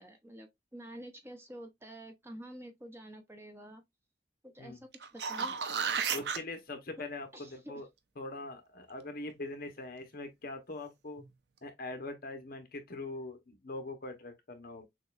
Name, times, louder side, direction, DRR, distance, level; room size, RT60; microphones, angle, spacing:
voice 1, 0.0-3.8 4.4-5.6 7.3-7.8, right 1 dB, 15° right, 0.6 m, -48 dB
sound 1, 4.9-6.4 11.2-11.3, right 6 dB, 65° right, 0.5 m, -33 dB
voice 2, 6.1-7.9 8.2-11.2 11.6-14.9, left 2 dB, 55° left, 0.9 m, -42 dB
6.3 x 2.3 x 2.4 m
head